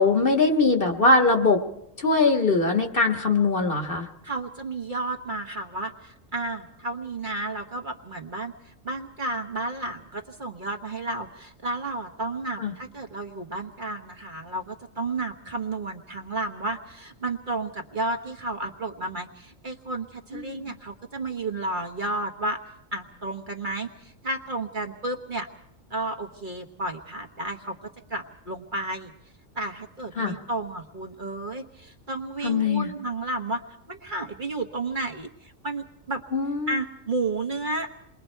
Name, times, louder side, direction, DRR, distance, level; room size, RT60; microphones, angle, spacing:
voice 1, 0.0-1.6 2.0-4.1 12.6-12.7 20.3-20.7 30.2-30.3 32.4-32.9 36.3-36.7, left 3 dB, 45° left, 4 dB, 1.8 m, -21 dB
voice 2, 4.2-22.6 22.9-25.5 25.9-27.8 28.1-29.1 29.5-36.2 36.7-37.9, right 2 dB, 40° right, 3 dB, 1.5 m, -32 dB
28.0 x 22.0 x 4.6 m, 0.78 s
omnidirectional pair, 1.3 m